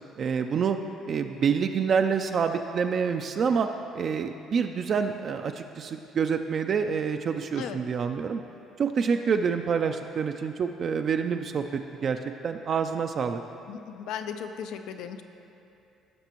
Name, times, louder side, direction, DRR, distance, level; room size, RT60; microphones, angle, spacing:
voice 1, 0.2-0.8 1.0-3.7 3.9-8.4 8.8-13.4, right 6 dB, 50° right, 6 dB, 0.3 m, -27 dB
voice 2, 13.7-15.2, left 7 dB, 80° left, 8 dB, 0.5 m, -36 dB
16.0 x 6.0 x 3.0 m, 2.7 s
cardioid pair, 105°, 0 cm